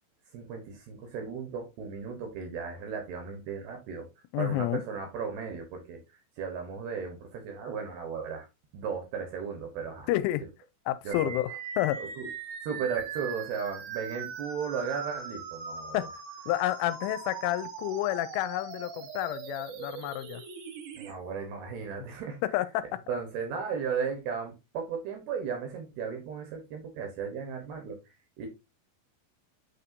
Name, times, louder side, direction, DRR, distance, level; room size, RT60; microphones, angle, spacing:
voice 1, 0.3-4.1 4.4-8.5 8.7-10.1 11.0-11.3 12.2-12.3 12.6-16.1 20.9-22.4 23.1-28.5, right 6 dB, 70° right, 2.6 m, -35 dB
voice 2, 4.3-4.8 10.1-10.4 10.9-11.5 11.8-12.0 15.9-20.4 22.5-22.8, left 14 dB, 85° left, 3.0 m, -30 dB
sound 1, 11.1-21.1, right 5 dB, 90° right, 4.5 m, -41 dB
8.6 x 4.3 x 2.6 m
omnidirectional pair, 5.6 m